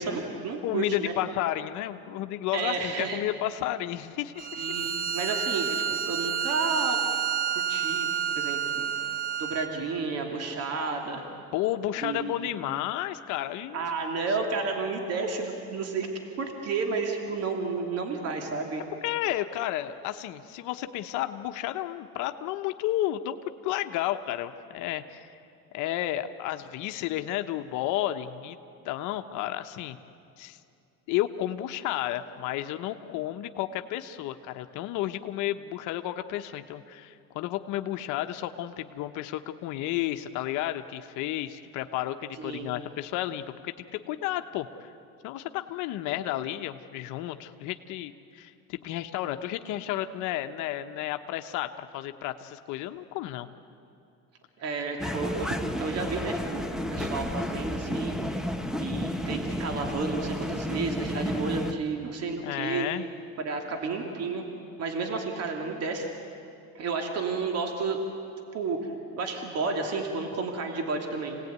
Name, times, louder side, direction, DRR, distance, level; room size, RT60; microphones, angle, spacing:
voice 1, 0.0-1.1 2.5-3.2 4.6-7.0 7.5-8.8 9.4-11.2 12.0-12.5 13.7-16.1 16.4-18.8 42.4-42.7 54.6-55.5 55.8-58.1 58.8-62.9 63.4-64.4 64.8-66.1 66.7-68.0 68.5-71.4, right 4 dB, 55° right, 3 dB, 2.8 m, -31 dB
voice 2, 0.6-4.8 11.5-13.8 19.0-23.4 23.6-25.3 25.7-28.6 28.8-30.0 30.4-30.6 31.1-44.9 45.2-53.5 62.4-63.0, left 13 dB, 80° left, 8 dB, 1.1 m, -32 dB
Bowed string instrument, 4.4-9.7, right 9 dB, 30° right, 1.0 m, -29 dB
sound 1, 55.0-61.7, left 1 dB, ahead, 1.3 m, -32 dB
27.5 x 18.0 x 9.5 m, 2.6 s
cardioid pair, 125°, 30 cm